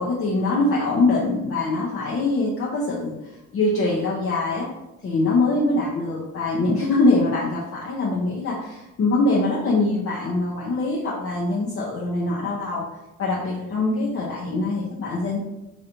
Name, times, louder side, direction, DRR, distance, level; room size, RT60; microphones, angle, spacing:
voice 1, 0.0-3.1 3.5-4.7 5.0-12.8 13.2-15.4, left 2 dB, 50° left, -5 dB, 0.7 m, -23 dB
3.1 x 2.8 x 2.6 m, 0.98 s
cardioid pair, 90°, 30 cm